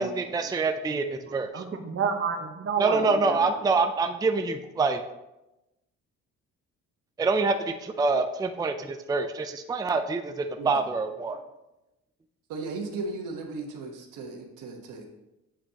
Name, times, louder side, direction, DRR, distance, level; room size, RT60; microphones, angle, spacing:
voice 1, 0.0-1.6 2.8-5.0 7.2-11.4, right 3 dB, 15° right, 7 dB, 0.4 m, -26 dB
voice 2, 1.3-3.8, right 6 dB, 45° right, 4 dB, 1.1 m, -31 dB
voice 3, 12.5-15.1, right 3 dB, 85° right, 2 dB, 1.2 m, -36 dB
8.5 x 5.4 x 2.9 m, 0.97 s
cardioid pair, 90°, 30 cm